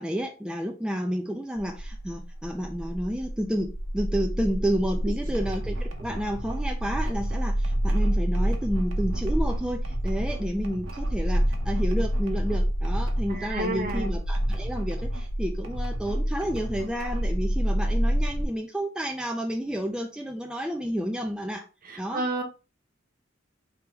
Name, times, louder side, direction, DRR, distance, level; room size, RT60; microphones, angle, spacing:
voice 1, 0.0-21.7 22.0-22.3, equal, 5° right, 2 dB, 0.4 m, -30 dB
sound 1, 1.6-18.4, equal, 60° left, 0.8 m, -28 dB
sound 2, 5.3-15.3 15.6-17.4, right 1 dB, 85° right, 1.0 m, -41 dB
voice 2, 13.5-14.1 22.1-22.4, right 2 dB, 45° right, 4 dB, 1.0 m, -29 dB
3.4 x 3.0 x 4.6 m, 0.32 s
head